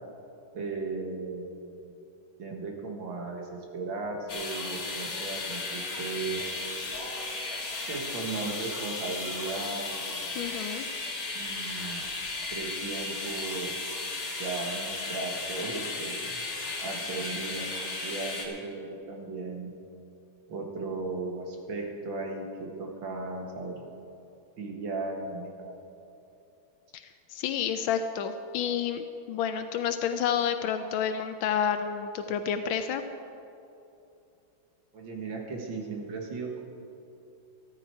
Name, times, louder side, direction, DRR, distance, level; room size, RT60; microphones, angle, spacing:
voice 1, 0.5-2.0 2.4-6.4 7.9-10.6 11.3-12.0 12.5-13.8 14.4-16.4 16.8-19.7 20.5-23.7 24.6-25.7 34.9-36.6, right 3 dB, 70° right, 1 dB, 2.4 m, -36 dB
sound 1, 4.3-18.4, left 3 dB, 50° left, 2.0 m, -35 dB
voice 2, 10.4-10.9 26.9-33.0, left 8 dB, 85° left, 8 dB, 1.4 m, -30 dB
13.5 x 13.0 x 4.7 m, 2.7 s
omnidirectional pair, 2.2 m